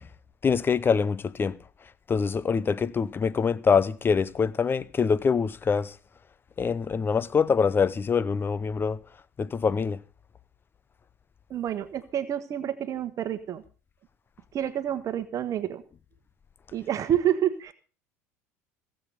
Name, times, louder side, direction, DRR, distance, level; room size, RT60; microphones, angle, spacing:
voice 1, 0.4-1.6 2.1-5.9 6.6-9.0 9.4-10.0, left 6 dB, 25° left, 0.7 m, -24 dB
voice 2, 11.5-13.6 14.5-15.8 16.7-17.7, right 10 dB, 40° right, 1.3 m, -28 dB
17.5 x 7.9 x 6.8 m
hypercardioid pair, 70°, 8 cm